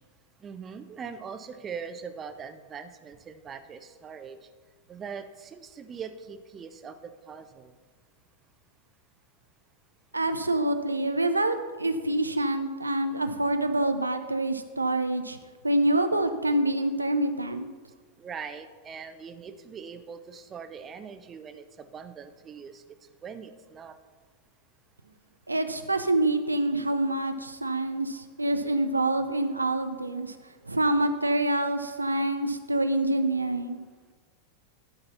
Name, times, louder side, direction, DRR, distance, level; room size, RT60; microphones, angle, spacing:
voice 1, 0.4-4.4 4.9-7.7 18.2-22.8 23.2-24.0, right 6 dB, 25° right, 9 dB, 0.6 m, -41 dB
voice 2, 10.1-15.4 15.6-17.7 25.5-30.4 30.6-33.8, right 1 dB, 80° right, 8 dB, 0.5 m, -26 dB
12.0 x 4.0 x 5.8 m, 1.4 s
figure-of-eight pair, 90°, 0 cm